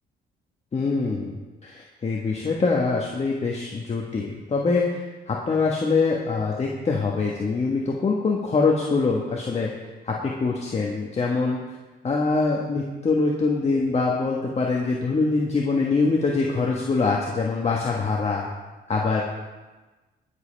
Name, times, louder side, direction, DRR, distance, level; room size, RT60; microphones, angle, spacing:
voice 1, 0.7-1.3 1.6-9.7 10.0-11.6 12.0-18.5 18.9-19.2, left 4 dB, 30° left, -2 dB, 1.4 m, -24 dB
19.5 x 7.4 x 3.4 m, 1.2 s
cardioid pair, 90°, 20 cm